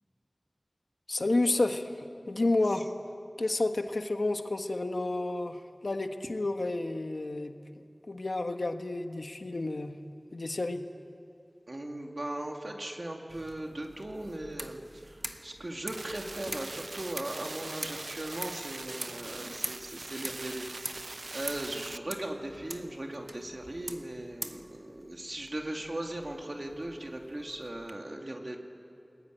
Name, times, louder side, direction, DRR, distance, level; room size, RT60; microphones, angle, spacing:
voice 1, 1.1-2.9 3.4-9.9 10.3-10.8 19.4-19.5, left 2 dB, 85° left, 6 dB, 1.5 m, -31 dB
voice 2, 11.7-20.8 21.3-28.6, right 1 dB, 55° right, 2 dB, 2.6 m, -38 dB
sound 1, 13.3-27.9, right 1 dB, 35° right, 1.4 m, -45 dB
sound 2, 15.9-22.0, right 2 dB, 80° right, 0.6 m, -42 dB
29.5 x 21.5 x 9.3 m, 2.6 s
wide cardioid pair, 50°, 0 cm